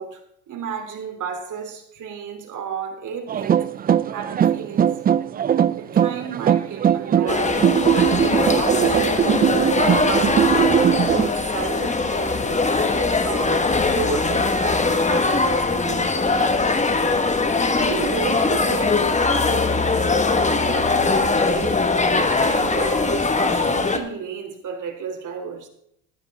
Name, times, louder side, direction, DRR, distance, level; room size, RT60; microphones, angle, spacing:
voice 1, 0.0-3.7 4.1-5.0 5.8-16.4 17.8-21.8 22.1-25.7, right 6 dB, 45° right, 3.1 m, -33 dB
sound 1, 3.3-11.3, right 9 dB, 25° right, 0.4 m, -20 dB
sound 2, 7.3-24.0, left 3 dB, 15° left, 1.6 m, -21 dB
15.5 x 11.0 x 3.6 m
supercardioid pair, 105°, 43 cm